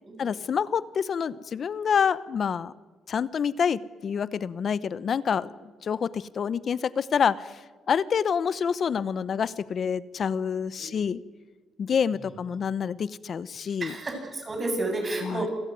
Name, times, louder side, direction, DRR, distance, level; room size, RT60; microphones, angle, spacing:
voice 1, 0.2-2.7 3.1-5.5 5.8-7.6 7.9-11.2 11.8-13.9 15.2-15.5, left 7 dB, 50° left, 18 dB, 0.9 m, -27 dB
voice 2, 13.8-15.5, right 2 dB, 30° right, 4 dB, 7.6 m, -31 dB
27.0 x 16.5 x 9.6 m, 1.3 s
cardioid pair, 90°, 0 cm